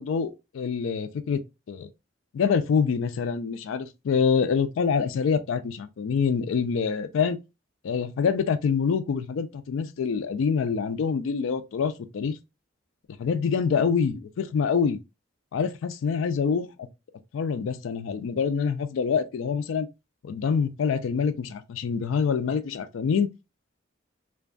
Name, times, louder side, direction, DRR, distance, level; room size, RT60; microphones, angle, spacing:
voice 1, 0.0-1.4 1.7-1.9 2.3-7.4 7.8-12.4 13.2-15.0 15.5-16.9 17.3-19.9 20.2-23.3, left 6 dB, 85° left, 0.3 m, -26 dB
2.5 x 2.3 x 2.3 m
head